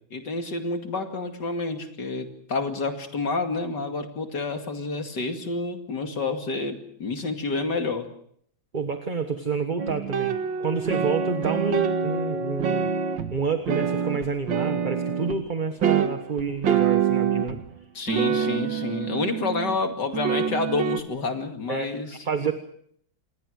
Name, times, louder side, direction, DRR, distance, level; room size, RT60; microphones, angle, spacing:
voice 1, 0.1-8.1 17.9-22.1, left 3 dB, 60° left, 5 dB, 3.0 m, -29 dB
voice 2, 8.7-12.9 13.3-17.6 21.7-21.9 22.2-22.5, right 5 dB, 25° right, 7 dB, 1.3 m, -29 dB
sound 1, 9.8-15.4 15.8-17.8 18.1-19.8 20.1-21.0, right 7 dB, 70° right, 2.2 m, -26 dB
28.0 x 21.5 x 6.5 m, 0.66 s
omnidirectional pair, 2.2 m